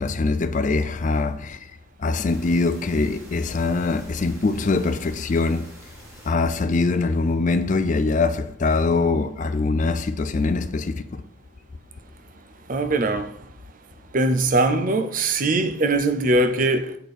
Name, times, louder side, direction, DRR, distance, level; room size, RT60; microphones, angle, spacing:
voice 1, 0.0-1.7 2.0-5.7 6.2-11.2, left 3 dB, 35° left, 0.4 m, -23 dB
sound 1, 2.3-6.3, equal, 15° right, 1.4 m, -47 dB
voice 2, 12.7-13.4 14.1-17.0, right 2 dB, 40° right, 0.5 m, -21 dB
7.9 x 4.3 x 4.9 m
head